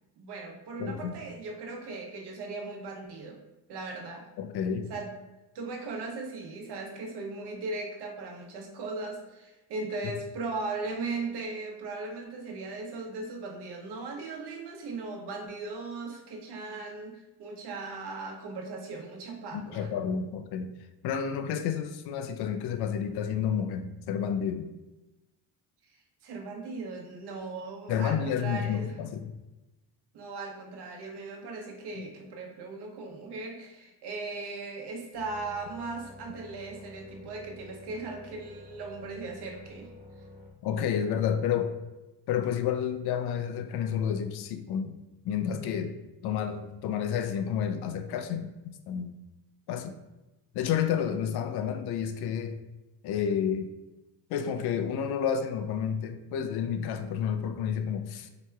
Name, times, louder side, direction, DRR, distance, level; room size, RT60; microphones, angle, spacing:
voice 1, 0.2-3.4 3.7-4.3 4.9-5.1 5.5-19.9 26.2-28.9 30.1-39.9, right 3 dB, 60° right, 1 dB, 0.9 m, -38 dB
voice 2, 0.8-1.2 4.4-4.9 19.5-20.7 21.0-24.7 27.9-29.3 32.0-32.1 40.6-41.8 42.3-45.0 45.2-46.0 46.2-49.1 49.7-49.9 50.5-52.6 53.0-53.7 54.3-58.3, left 8 dB, 60° left, 8 dB, 0.5 m, -30 dB
sound 1, 35.1-40.5, left 1 dB, 20° right, 1.1 m, -50 dB
4.4 x 2.9 x 2.3 m, 1.0 s
cardioid pair, 100°, 44 cm